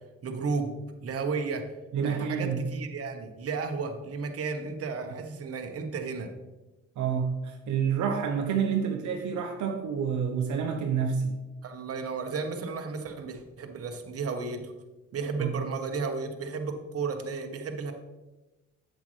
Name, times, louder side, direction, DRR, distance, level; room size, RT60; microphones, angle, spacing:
voice 1, 0.2-0.7 1.0-1.6 2.0-6.3 11.6-14.7 15.1-17.9, right 4 dB, 50° right, 5 dB, 1.1 m, -33 dB
voice 2, 1.9-2.6 7.0-11.4 15.4-15.5, right 7 dB, 75° right, 4 dB, 0.9 m, -28 dB
8.1 x 7.5 x 3.3 m, 1.1 s
cardioid pair, 90°, 30 cm